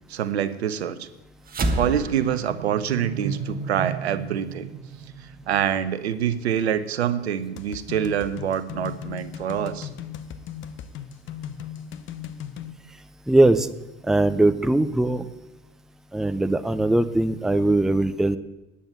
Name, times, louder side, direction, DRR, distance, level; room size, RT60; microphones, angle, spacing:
voice 1, 0.1-1.1 1.7-4.7 5.2-9.9, right 9 dB, 75° right, 13 dB, 0.8 m, -26 dB
sound 1, 1.5-6.1, right 3 dB, 25° right, 1.3 m, -31 dB
sound 2, 7.6-12.7, left 9 dB, 35° left, 0.8 m, -37 dB
voice 2, 13.3-13.7 14.0-15.3 16.1-18.4, right 2 dB, ahead, 11 dB, 0.5 m, -20 dB
9.7 x 8.8 x 8.6 m, 1.0 s
figure-of-eight pair, 70°, 33 cm